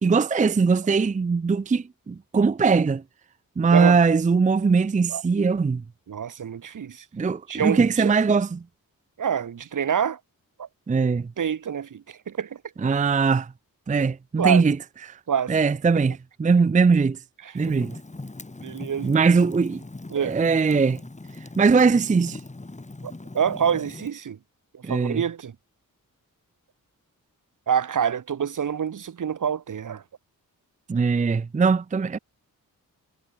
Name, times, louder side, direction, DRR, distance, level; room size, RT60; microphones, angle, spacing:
voice 1, 0.0-3.0 3.6-5.8 7.1-8.6 10.9-11.3 12.8-13.5 13.9-14.8 15.1-15.2 15.5-17.2 17.5-18.0 19.0-19.8 20.2-21.0 21.6-22.4 24.8-25.2 30.9-32.2, right 5 dB, 20° right, 0.5 m, -21 dB
voice 2, 6.1-7.0 7.5-8.1 9.2-10.2 10.6-10.7 11.4-12.6 14.4-14.6 15.3-15.6 17.4-17.7 18.6-19.1 20.1-20.4 23.0-24.4 24.7-25.5 27.7-30.0, right 8 dB, 60° right, 1.2 m, -27 dB
Fire, 17.5-24.1, left 2 dB, 20° left, 3.1 m, -40 dB
wide cardioid pair, 95°, 35 cm